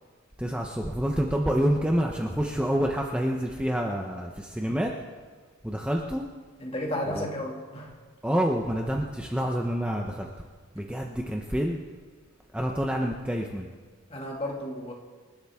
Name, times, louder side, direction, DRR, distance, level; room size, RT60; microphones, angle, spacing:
voice 1, 0.4-4.9 5.6-6.2 7.1-7.3 8.2-10.3 10.7-11.8 12.5-13.7, equal, 5° right, 0 dB, 0.8 m, -27 dB
voice 2, 6.6-7.9 14.1-14.9, left 1 dB, 25° left, -1 dB, 2.2 m, -33 dB
26.5 x 12.0 x 3.6 m, 1.4 s
head